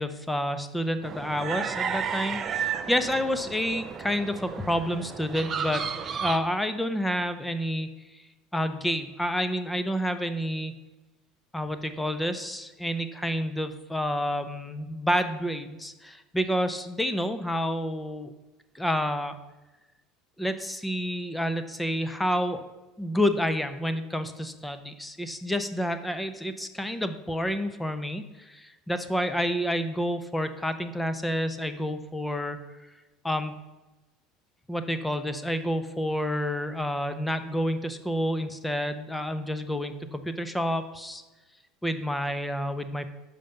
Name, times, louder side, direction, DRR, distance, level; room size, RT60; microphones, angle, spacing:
voice 1, 0.0-5.9 6.2-7.9 8.5-10.7 11.5-18.3 18.7-19.3 20.4-22.6 23.0-32.6 33.2-33.6 34.7-41.2 41.8-43.1, equal, 10° left, 10 dB, 0.8 m, -29 dB
sound 1, 1.0-6.4, right 7 dB, 40° right, 0.6 m, -33 dB
6.4 x 5.1 x 7.0 m, 1.1 s
hypercardioid pair, 70°, 0 cm